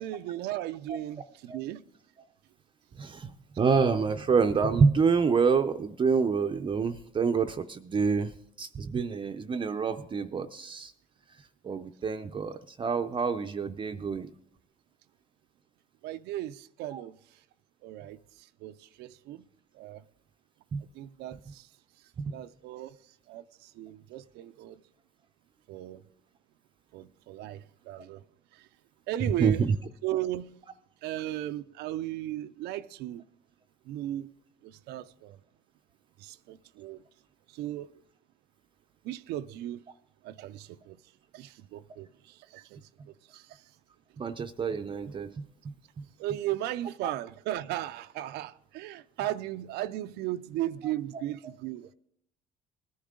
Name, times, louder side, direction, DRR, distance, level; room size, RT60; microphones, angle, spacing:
voice 1, 0.0-1.8 16.0-17.2 17.8-19.4 19.7-20.0 20.9-21.7 22.3-23.0 23.3-24.8 25.7-26.0 26.9-28.2 28.5-28.7 29.1-29.6 30.0-30.5 31.0-33.2 33.9-34.3 34.6-35.4 36.2-37.0 37.5-37.9 39.0-39.8 40.2-41.0 41.3-42.8 43.3-43.6 46.2-51.9, right 14 dB, 85° right, 0.5 m, -36 dB
voice 2, 3.0-8.3 8.6-10.9 11.6-14.3 16.9-17.0 20.7-20.8 22.2-22.3 29.4-29.8 44.2-46.0 47.0-47.1, right 5 dB, 30° right, 0.5 m, -27 dB
19.5 x 10.0 x 3.7 m
cardioid pair, 110°, 17 cm